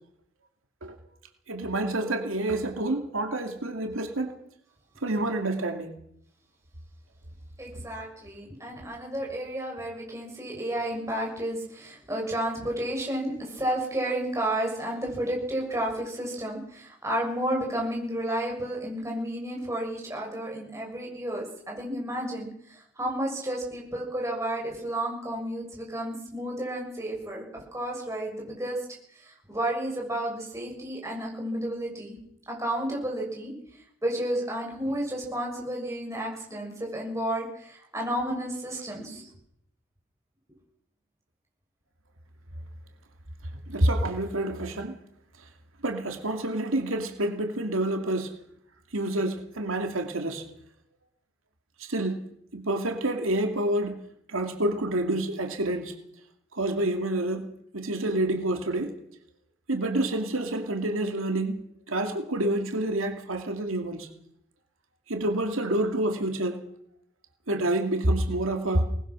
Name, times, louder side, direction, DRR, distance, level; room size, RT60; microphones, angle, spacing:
voice 1, 1.5-4.3 5.0-5.9 43.7-45.0 45.8-48.3 48.9-50.4 51.8-52.2 52.5-54.0 54.3-55.9 56.5-58.9 59.7-64.1 65.1-66.6 67.5-68.9, right 1 dB, 80° right, 4 dB, 2.6 m, -28 dB
voice 2, 7.6-28.8 29.2-32.2 32.5-33.5 34.0-39.3, right 1 dB, 15° right, -1 dB, 6.7 m, -32 dB
23.0 x 20.0 x 6.3 m, 0.71 s
head